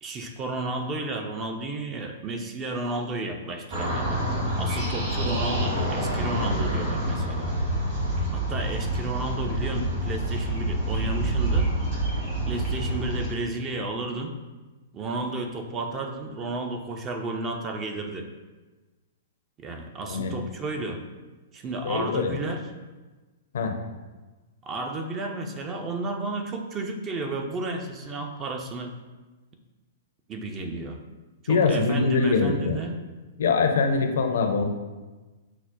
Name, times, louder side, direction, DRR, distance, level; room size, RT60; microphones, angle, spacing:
voice 1, 0.0-4.2 4.6-7.5 8.3-11.7 12.5-14.3 14.9-18.3 19.6-21.0 21.5-22.6 24.6-28.9 30.3-31.0 31.4-33.0, right 2 dB, 25° right, 4 dB, 0.4 m, -32 dB
sound 1, 3.7-13.3, right 1 dB, 40° right, 1.4 m, -27 dB
voice 2, 21.8-22.4 23.5-23.7 31.5-32.8 33.4-34.6, left 4 dB, 65° left, 4 dB, 0.4 m, -23 dB
5.6 x 2.0 x 2.4 m, 1.2 s
figure-of-eight pair, 110°, 0 cm